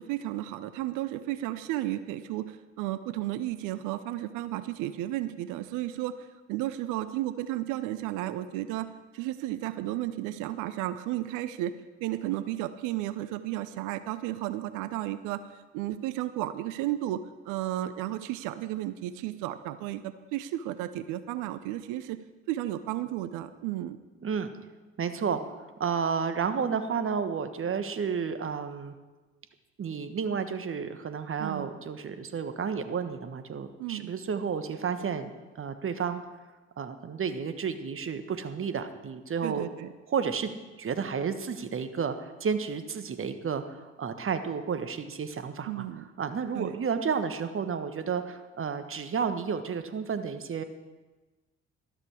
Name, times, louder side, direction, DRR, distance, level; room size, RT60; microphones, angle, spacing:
voice 1, 0.0-11.7 12.0-22.2 22.5-24.0 31.4-31.7 33.8-34.1 39.4-39.9 45.7-46.1 46.5-46.8, right 14 dB, 65° right, 13 dB, 0.7 m, -33 dB
voice 2, 25.0-25.4 25.8-28.9 29.8-35.3 35.6-36.2 36.8-39.6 40.1-45.8 46.2-50.6, right 6 dB, 40° right, 10 dB, 1.4 m, -31 dB
13.0 x 13.0 x 4.8 m, 1.2 s
hypercardioid pair, 45°, 33 cm